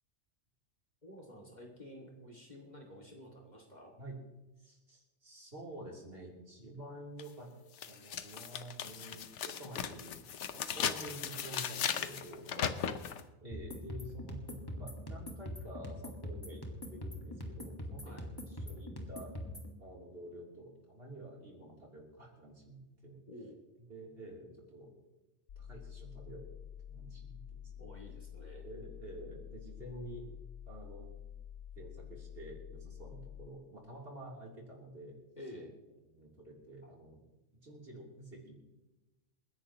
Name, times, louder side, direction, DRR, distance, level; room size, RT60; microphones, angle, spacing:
voice 1, 1.0-3.9 12.6-12.8 18.0-18.3 23.3-23.6 27.8-28.6 35.4-35.7, equal, 40° left, 0 dB, 2.4 m, -50 dB
voice 2, 4.6-7.5 7.9-10.1 10.4-12.5 13.4-19.3 19.8-23.2 23.9-24.9 25.6-26.5 26.9-27.9 28.6-30.3 30.7-31.1 31.8-35.2 36.1-37.2 37.6-38.7, right 1 dB, 55° right, -2 dB, 3.6 m, -49 dB
sound 1, 7.2-7.3 7.8-13.2, left 8 dB, 85° left, 1.1 m, -37 dB
sound 2, 13.5-19.7, left 1 dB, 20° left, 1.8 m, -43 dB
sound 3, 25.5-33.5, left 9 dB, 65° left, 0.8 m, -49 dB
28.5 x 10.5 x 3.0 m, 1.1 s
omnidirectional pair, 1.2 m